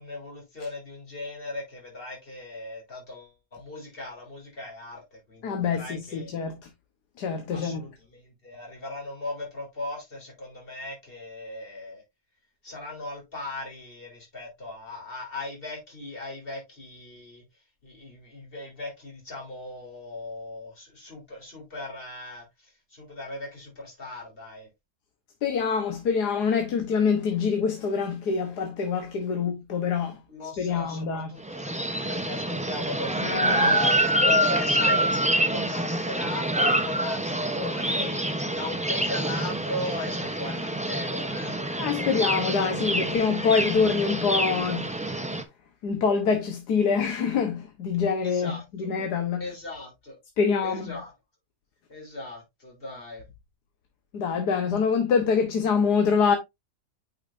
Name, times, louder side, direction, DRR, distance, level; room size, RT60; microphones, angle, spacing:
voice 1, 0.0-6.5 7.5-12.0 12.6-17.4 17.8-22.4 22.9-24.7 29.3-29.4 30.3-35.2 35.5-41.6 48.2-48.9 49.4-50.2 50.6-51.1 51.9-53.2, left 2 dB, 35° left, 3.7 m, -38 dB
voice 2, 5.4-6.6 7.2-7.9 25.4-30.2 30.6-31.3 33.2-33.7 41.8-44.9 45.8-49.4 50.4-50.9 54.1-56.4, left 5 dB, 80° left, 1.7 m, -25 dB
sound 1, 31.4-45.4, right 1 dB, 10° right, 0.5 m, -26 dB
8.7 x 5.7 x 2.6 m
omnidirectional pair, 1.7 m